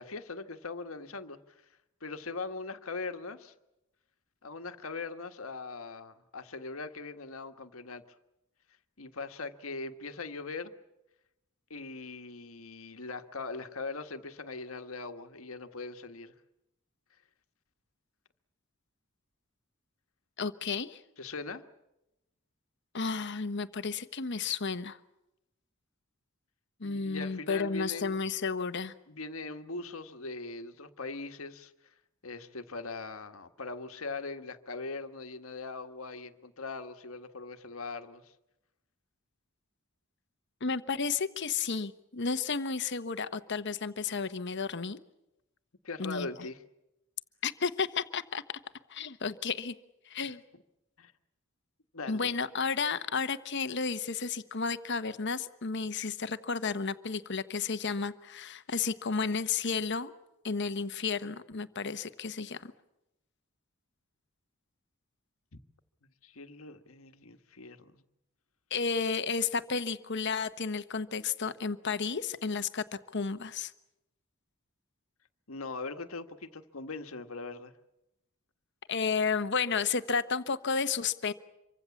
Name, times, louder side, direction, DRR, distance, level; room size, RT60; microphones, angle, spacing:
voice 1, 0.0-1.6 2.0-3.5 4.4-8.0 9.0-10.7 11.7-16.3 21.2-21.6 26.8-28.2 29.1-31.7 32.2-38.3 45.8-46.6 50.2-50.3 51.0-51.1 51.9-52.3 66.0-68.0 75.5-77.7, left 3 dB, 80° left, 8 dB, 1.6 m, -41 dB
voice 2, 20.4-21.0 22.9-25.0 26.8-28.9 40.6-45.0 46.0-46.3 47.4-48.6 48.9-49.7 50.1-50.4 52.1-60.1 60.4-62.7 68.7-72.8 73.1-73.7 78.9-81.3, left 5 dB, 55° left, 11 dB, 1.1 m, -32 dB
26.5 x 24.0 x 7.2 m, 0.91 s
head